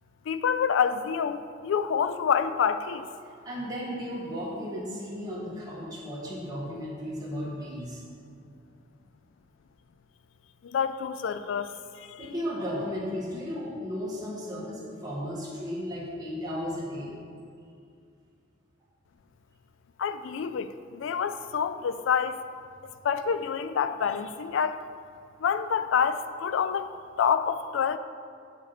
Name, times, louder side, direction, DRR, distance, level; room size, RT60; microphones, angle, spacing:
voice 1, 0.3-3.0 10.6-12.2 20.0-22.4 23.0-24.8 25.4-26.9 27.2-28.0, left 7 dB, 80° left, 12 dB, 0.3 m, -27 dB
voice 2, 3.4-8.0 12.2-17.1, equal, 20° right, -7 dB, 1.6 m, -35 dB
8.0 x 4.9 x 4.2 m, 2.3 s
head